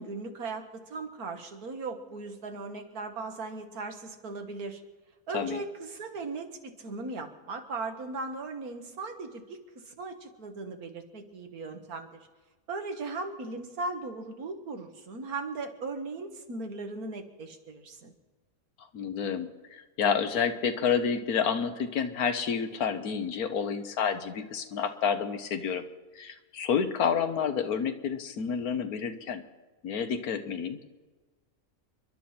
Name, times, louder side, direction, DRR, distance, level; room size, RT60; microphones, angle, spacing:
voice 1, 0.0-4.8 5.3-12.1 12.7-18.1, right 3 dB, 85° right, 5 dB, 2.0 m, -38 dB
voice 2, 18.9-25.8 26.2-29.4 29.8-30.8, left 7 dB, 85° left, 9 dB, 1.5 m, -29 dB
29.5 x 11.0 x 4.3 m, 1.3 s
omnidirectional pair, 1.5 m